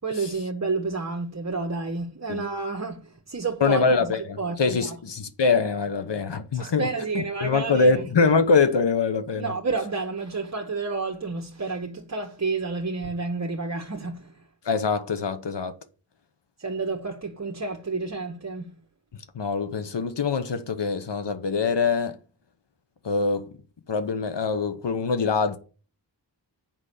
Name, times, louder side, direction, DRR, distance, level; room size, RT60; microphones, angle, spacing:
voice 1, 0.0-4.9 6.5-8.0 9.4-14.4 16.6-18.7, right 3 dB, 40° right, 1.2 m, -30 dB
voice 2, 3.6-6.9 7.1-9.5 14.6-15.7 19.3-22.2 23.0-23.5 23.9-25.6, left 4 dB, 70° left, 1.0 m, -24 dB
7.7 x 5.4 x 6.6 m
wide cardioid pair, 75°, 43 cm